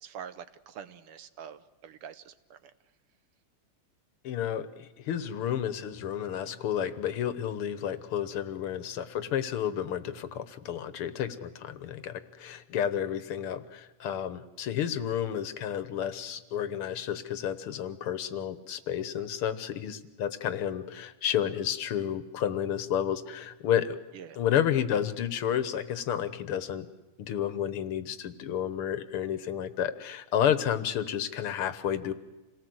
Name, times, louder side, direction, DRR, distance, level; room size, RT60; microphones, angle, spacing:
voice 1, 0.0-2.7 24.1-24.4, right 8 dB, 90° right, 11 dB, 2.1 m, -45 dB
voice 2, 4.2-24.0 24.4-26.9 27.2-32.1, left 9 dB, 85° left, 12 dB, 2.1 m, -31 dB
27.5 x 18.5 x 7.9 m, 1.1 s
omnidirectional pair, 2.4 m